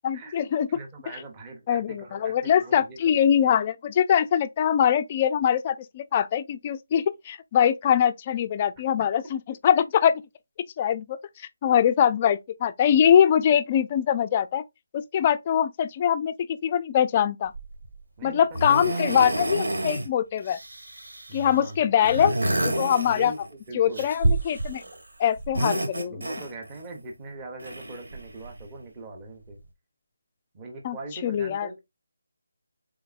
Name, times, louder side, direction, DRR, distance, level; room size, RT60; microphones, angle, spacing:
voice 1, 0.0-0.7 1.7-10.2 10.8-14.6 14.9-17.5 18.2-20.6 21.3-22.3 22.6-23.3 23.7-24.8 25.2-26.2 30.8-31.0 31.2-31.7, left 9 dB, 20° left, 0.3 m, -23 dB
voice 2, 0.7-3.0 18.2-18.4 18.7-19.0 21.3-21.9 22.2-22.4 23.0-24.1 25.7-29.6 30.5-31.8, right 2 dB, 15° right, 0.8 m, -41 dB
sound 1, 17.5-17.9 18.5-20.1 20.4-21.5 22.0-23.5 23.9-25.0 25.4-26.8 27.6-28.6 29.5-29.6, right 1 dB, 80° right, 1.8 m, -29 dB
4.6 x 3.9 x 2.4 m
figure-of-eight pair, 170°, 0 cm